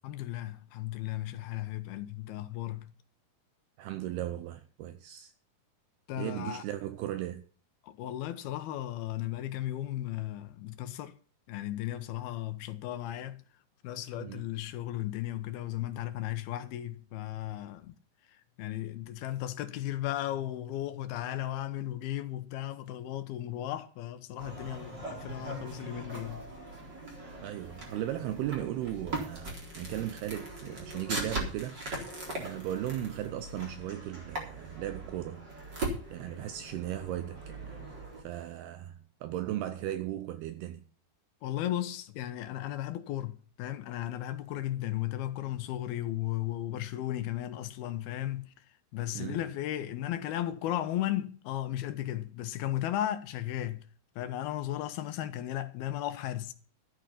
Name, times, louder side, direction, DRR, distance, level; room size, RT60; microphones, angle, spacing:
voice 1, 0.0-2.9 6.1-6.6 7.8-11.1 11.5-13.4 13.8-17.9 18.6-26.4 41.4-48.5 48.9-53.9 54.2-56.5, left 13 dB, 75° left, 2.8 m, -35 dB
voice 2, 3.8-5.3 6.2-7.4 14.2-14.4 27.4-35.5 36.1-40.8 49.2-49.5, right 13 dB, 75° right, 2.7 m, -37 dB
sound 1, 24.4-38.2, right 2 dB, 25° right, 4.3 m, -40 dB
13.0 x 9.2 x 5.7 m
omnidirectional pair, 4.8 m